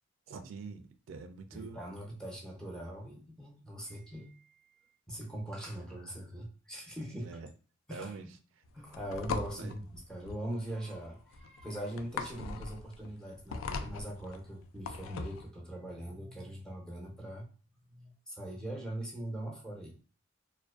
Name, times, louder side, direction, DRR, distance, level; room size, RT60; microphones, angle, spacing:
voice 1, 0.3-1.8 7.2-7.5 7.9-8.3 9.6-9.7 12.4-12.6, right 4 dB, 75° right, 7 dB, 0.3 m, -45 dB
voice 2, 1.5-4.5 5.1-7.4 7.9-8.3 8.7-17.5 17.9-20.0, right 1 dB, 5° left, -2 dB, 0.5 m, -41 dB
sound 1, 8.6-15.5, left 4 dB, 90° left, 0.3 m, -40 dB
2.4 x 2.2 x 2.3 m, 0.39 s
head